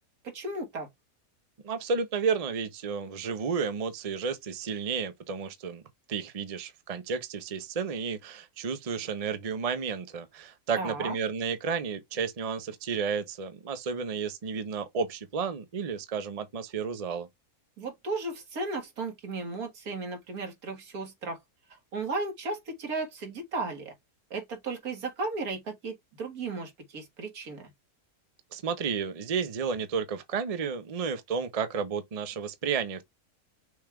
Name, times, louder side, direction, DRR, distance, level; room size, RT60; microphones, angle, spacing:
voice 1, 0.2-0.9 10.8-11.2 17.8-21.4 21.7-23.9 24.3-27.6, right 3 dB, 75° right, 2.0 m, -35 dB
voice 2, 1.6-5.8 6.1-17.3 28.5-33.0, right 6 dB, 40° right, 0.5 m, -32 dB
6.2 x 2.4 x 3.4 m
omnidirectional pair, 1.6 m